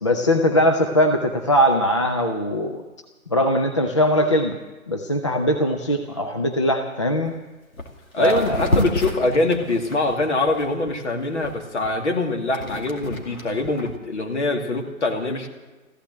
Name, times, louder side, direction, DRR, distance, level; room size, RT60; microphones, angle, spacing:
voice 1, 0.0-2.8 3.3-4.6 4.9-7.3 8.2-8.6, equal, 20° left, 4 dB, 0.5 m, -20 dB
sound 1, 7.3-7.4 7.7-7.9 8.2-10.9 11.4-13.9, left 1 dB, 75° left, 2.5 m, -29 dB
voice 2, 8.1-15.5, left 2 dB, 50° left, 3 dB, 2.4 m, -23 dB
15.0 x 12.5 x 7.7 m, 1.2 s
figure-of-eight pair, 140°, 43 cm